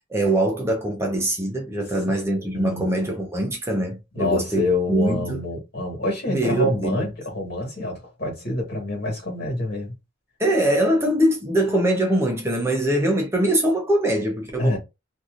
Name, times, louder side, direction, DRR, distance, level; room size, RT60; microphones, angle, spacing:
voice 1, 0.1-4.6 4.9-5.4 6.3-7.0 10.4-14.8, right 1 dB, 15° right, 0.7 m, -22 dB
voice 2, 2.1-2.8 4.1-9.9 14.6-14.8, left 2 dB, 60° left, 1.7 m, -27 dB
2.9 x 2.6 x 2.5 m
head